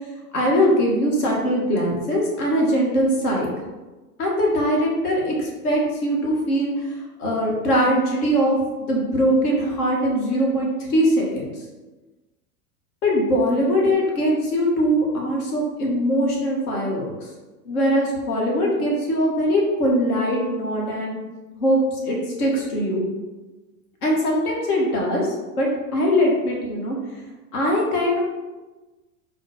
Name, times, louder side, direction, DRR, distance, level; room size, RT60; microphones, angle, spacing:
voice 1, 0.3-3.5 4.2-6.9 7.2-11.5 13.0-17.1 17.6-21.2 21.6-23.1 24.0-27.0 27.5-28.2, equal, 70° left, -1 dB, 1.2 m, -21 dB
4.1 x 2.1 x 3.0 m, 1.2 s
hypercardioid pair, 90°, 46 cm